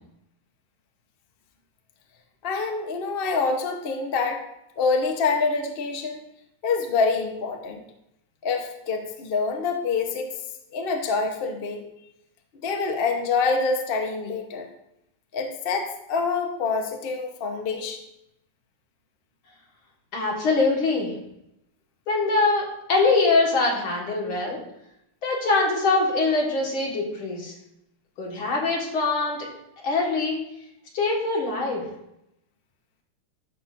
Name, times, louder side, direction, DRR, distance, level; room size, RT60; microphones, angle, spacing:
voice 1, 2.4-4.4 4.8-6.2 6.6-7.8 8.4-10.4 10.7-11.8 12.6-14.7 15.3-18.0, left 4 dB, 50° left, 3 dB, 0.6 m, -26 dB
voice 2, 20.1-21.1 22.1-24.6 25.2-27.5 28.2-29.4 29.8-30.4 30.9-31.8, left 3 dB, 70° left, -1 dB, 2.6 m, -23 dB
12.5 x 6.0 x 2.6 m, 0.83 s
omnidirectional pair, 2.4 m